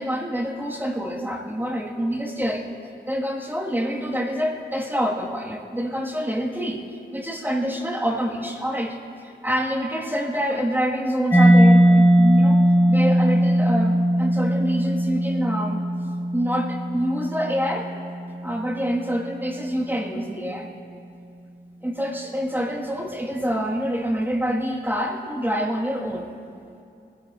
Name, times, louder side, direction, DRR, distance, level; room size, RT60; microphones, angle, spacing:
voice 1, 0.0-2.7 3.1-6.8 7.1-12.6 12.9-15.8 16.3-17.9 18.4-20.7 21.8-26.3, equal, 10° right, -1 dB, 1.7 m, -26 dB
Mallet percussion, 11.3-18.8, equal, 15° left, 2.7 m, -19 dB
23.0 x 16.5 x 2.5 m, 2.5 s
wide cardioid pair, 90°, 19 cm